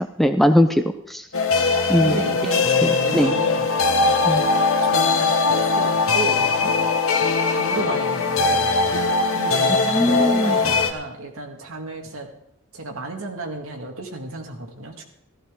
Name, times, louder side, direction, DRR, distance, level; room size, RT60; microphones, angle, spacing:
voice 1, 0.2-1.2 1.9-2.2 2.8-3.3 4.2-4.4 9.9-10.6, left 1 dB, ahead, 7 dB, 0.5 m, -19 dB
sound 1, 1.3-10.9, left 4 dB, 70° left, 1.3 m, -20 dB
voice 2, 2.0-3.7 4.0-4.2 4.8-6.8 7.5-9.0 9.3-12.3 12.7-15.0, right 2 dB, 70° right, 2 dB, 2.0 m, -33 dB
14.5 x 14.5 x 3.7 m, 0.77 s
head